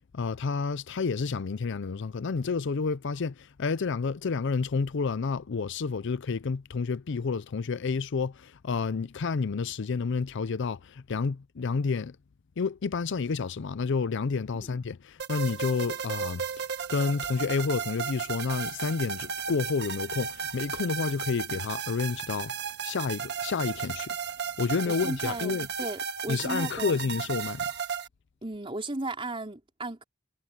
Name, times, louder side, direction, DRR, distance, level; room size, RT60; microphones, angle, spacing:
voice 1, 0.1-12.2 12.6-22.5 22.8-24.2 24.6-25.7 26.3-27.7, left 4 dB, 65° left, 0.5 m, -30 dB
sound 1, 15.2-28.1, right 7 dB, 55° right, 1.6 m, -34 dB
voice 2, 24.9-27.0 28.4-30.0, right 2 dB, 25° right, 4.2 m, -36 dB
head